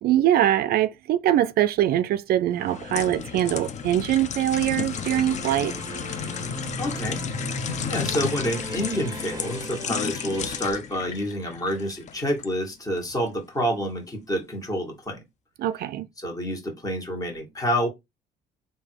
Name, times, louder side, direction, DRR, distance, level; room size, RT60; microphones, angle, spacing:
voice 1, 0.0-5.7 15.6-16.1, right 12 dB, 65° right, 0.4 m, -23 dB
Tap running water metal sink draining, 2.6-12.5 13.0-13.2, left 7 dB, 45° left, 0.6 m, -33 dB
sound 1, 4.8-10.7, right 2 dB, 20° right, 0.7 m, -38 dB
voice 2, 6.8-7.2 7.9-15.2 16.2-17.9, equal, 20° left, 1.8 m, -28 dB
3.5 x 2.7 x 4.6 m
cardioid pair, 110°, 17 cm